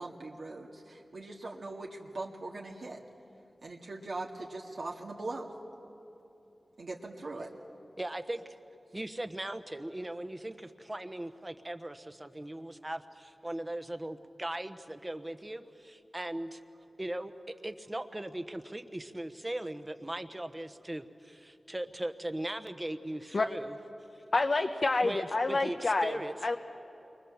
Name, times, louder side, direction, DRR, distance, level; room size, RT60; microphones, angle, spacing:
voice 1, 0.0-3.0 3.6-5.5 6.8-7.5, right 2 dB, 70° right, -2 dB, 2.0 m, -41 dB
voice 2, 8.0-8.5 8.9-16.6 17.0-23.7 25.0-26.3, right 1 dB, 20° right, 9 dB, 1.1 m, -39 dB
voice 3, 24.3-26.2 26.4-26.6, left 3 dB, 55° left, 5 dB, 0.9 m, -28 dB
29.0 x 24.0 x 7.3 m, 2.9 s
wide cardioid pair, 90°, 0 cm